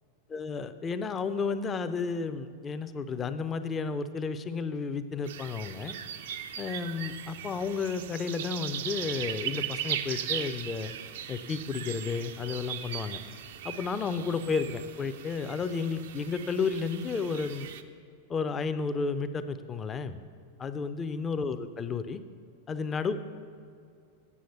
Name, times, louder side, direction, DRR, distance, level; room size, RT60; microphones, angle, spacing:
voice 1, 0.3-5.9 6.6-10.9 11.3-13.2 13.6-17.7 18.3-20.2 20.6-22.2 22.7-23.2, left 5 dB, 20° left, 11 dB, 0.5 m, -32 dB
sound 1, 5.2-17.8, right 10 dB, 55° right, 0.4 m, -38 dB
8.5 x 7.6 x 7.0 m, 2.4 s
figure-of-eight pair, 90°, 0 cm